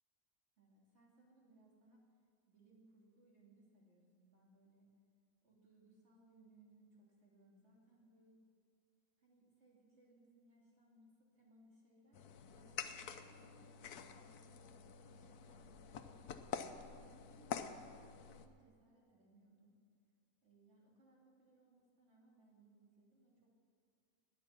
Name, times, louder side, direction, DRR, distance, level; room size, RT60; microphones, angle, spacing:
voice 1, 0.6-2.0 2.5-4.9 5.4-8.4 9.2-16.1 16.6-19.8 20.4-23.6, right 2 dB, 45° right, -3 dB, 3.1 m, -68 dB
sound 1, 12.1-18.5, left 7 dB, 90° left, 1.2 m, -48 dB
17.5 x 9.7 x 6.0 m, 2.2 s
omnidirectional pair, 1.6 m